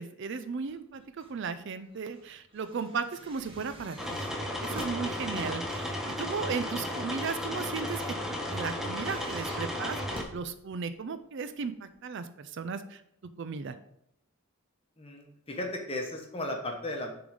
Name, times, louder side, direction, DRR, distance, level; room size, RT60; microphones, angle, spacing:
voice 1, 0.0-4.3 4.6-8.2 8.5-13.0 13.4-13.7, right 5 dB, 55° right, 11 dB, 0.4 m, -36 dB
sound 1, 0.6-1.4 1.7-11.1 11.9-12.0, right 1 dB, 25° right, 1.2 m, -48 dB
sound 2, 4.0-10.2, left 1 dB, ahead, 0.7 m, -34 dB
voice 2, 15.0-17.1, left 1 dB, 25° left, 2 dB, 1.0 m, -35 dB
6.9 x 3.9 x 4.8 m, 0.75 s
head